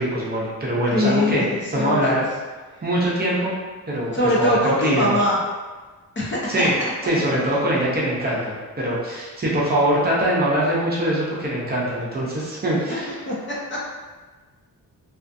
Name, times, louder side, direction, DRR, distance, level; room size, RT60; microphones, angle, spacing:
voice 1, 0.0-1.4 1.7-2.3 2.8-3.5 3.9-5.2 6.5-6.7 7.0-13.2, right 1 dB, 25° right, -6 dB, 0.5 m, -23 dB
voice 2, 0.9-2.0 4.1-5.4 6.2-6.7 12.9-13.0 13.3-13.4 13.7-13.8, left 1 dB, 30° left, -5 dB, 0.5 m, -22 dB
2.4 x 2.4 x 2.5 m, 1.3 s
wide cardioid pair, 130°, 36 cm